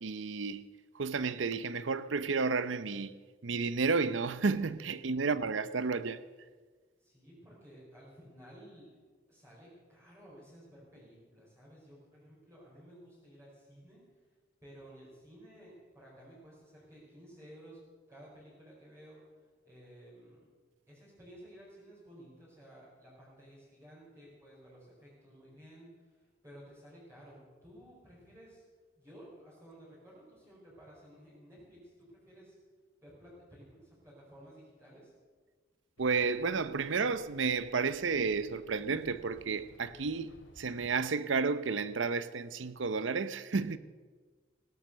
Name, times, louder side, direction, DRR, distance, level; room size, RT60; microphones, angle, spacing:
voice 1, 0.0-3.1 3.4-6.2 36.0-43.8, right 4 dB, 70° right, 0.7 m, -32 dB
voice 2, 7.0-8.9 9.3-14.0 14.6-17.8 18.1-19.2 19.6-20.4 20.9-28.6 28.9-32.5 33.0-35.1, equal, 15° right, 5.0 m, -55 dB
sound 1, 36.0-41.0, left 1 dB, 80° left, 2.5 m, -59 dB
17.0 x 12.5 x 6.7 m
head